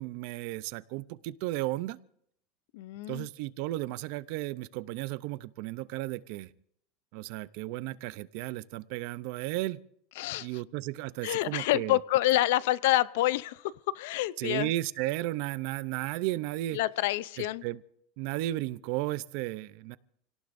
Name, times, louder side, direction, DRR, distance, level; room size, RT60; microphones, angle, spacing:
voice 1, 0.0-2.0 3.1-6.5 7.1-9.8 10.4-12.0 14.4-16.8 17.4-17.8 18.2-20.0, right 17 dB, 55° right, 17 dB, 0.6 m, -34 dB
voice 2, 2.7-3.3 10.2-10.5 11.2-14.7 16.7-17.6, left 16 dB, 70° left, 18 dB, 0.5 m, -28 dB
28.5 x 18.5 x 2.6 m, 0.69 s
supercardioid pair, 170°, 0 cm